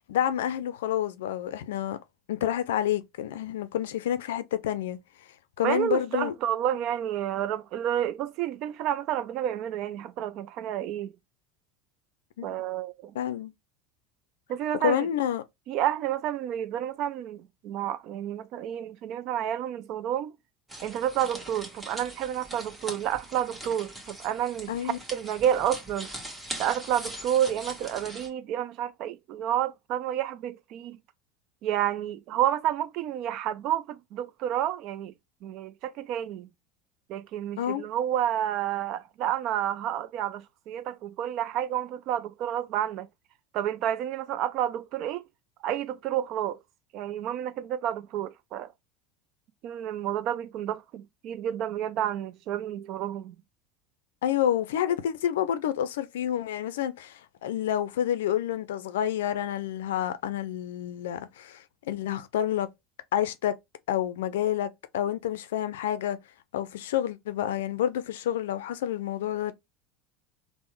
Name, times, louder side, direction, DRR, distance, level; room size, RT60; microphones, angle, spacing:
voice 1, 0.1-2.0 2.3-5.0 5.6-6.3 12.4-12.5 13.2-13.5 14.8-15.4 24.7-25.0 37.6-37.8 54.2-62.7 63.1-63.6 63.9-66.2 66.5-69.5, left 10 dB, 85° left, 0.4 m, -29 dB
voice 2, 5.6-11.1 12.4-13.1 14.5-15.1 15.7-20.3 20.8-26.1 26.6-31.0 31.6-35.1 35.4-36.5 37.1-43.1 43.5-45.3 45.6-46.6 46.9-48.7 49.6-53.4, right 11 dB, 60° right, 0.4 m, -30 dB
sound 1, 20.7-28.3, right 1 dB, 15° right, 1.2 m, -41 dB
3.4 x 2.0 x 3.1 m
hypercardioid pair, 90°, 0 cm